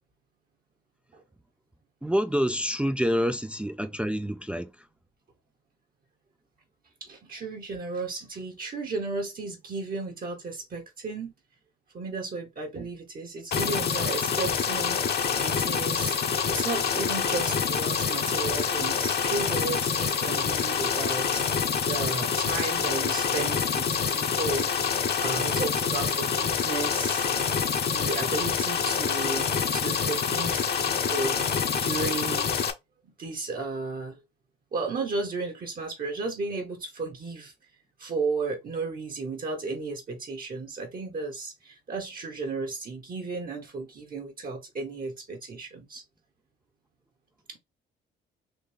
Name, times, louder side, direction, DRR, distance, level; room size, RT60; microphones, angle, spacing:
voice 1, 2.0-4.7, equal, 5° right, 0.4 m, -27 dB
voice 2, 7.0-11.3 11.9-21.4 21.9-24.7 25.2-27.3 27.8-29.5 29.7-31.4 31.8-32.5 33.0-34.2 34.7-37.5 38.0-46.0 47.5-47.6, right 3 dB, 45° right, 1.2 m, -34 dB
sound 1, 13.5-32.7, left 6 dB, 55° left, 1.1 m, -26 dB
4.0 x 2.6 x 3.3 m
cardioid pair, 90°, 20 cm